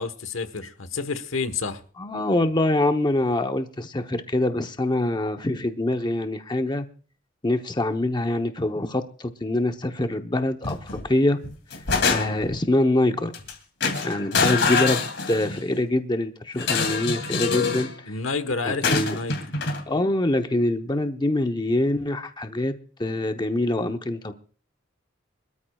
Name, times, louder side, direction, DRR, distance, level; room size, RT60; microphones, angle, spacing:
voice 1, 0.0-1.8 14.3-14.6 17.4-17.8 18.0-19.4, left 4 dB, 80° left, 1.2 m, -30 dB
voice 2, 2.0-6.9 7.4-11.4 12.1-13.3 14.0-18.1 18.6-19.2 19.9-22.7 23.0-24.3, left 1 dB, 20° left, 0.8 m, -24 dB
sound 1, 10.6-11.1 11.4-12.6 13.3-13.5 13.8-15.7 16.6-17.9 18.8-19.8, left 4 dB, 60° left, 2.6 m, -25 dB
25.0 x 13.0 x 2.3 m
head